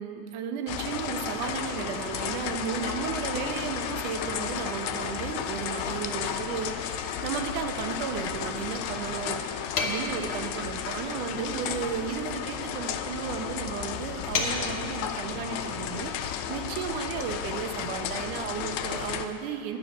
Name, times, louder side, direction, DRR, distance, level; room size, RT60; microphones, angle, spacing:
voice 1, 0.0-9.5 9.8-19.8, right 7 dB, 85° right, 6 dB, 2.3 m, -34 dB
sound 1, 0.7-19.3, left 9 dB, 80° left, 1.8 m, -33 dB
sound 2, 4.2-5.0 5.2-5.3 5.6-7.0 7.2-7.6 7.9-8.7, left 2 dB, 15° left, 2.2 m, -51 dB
sound 3, 8.3-15.1, left 4 dB, 55° left, 1.5 m, -36 dB
12.0 x 9.1 x 6.0 m, 2.6 s
omnidirectional pair, 3.5 m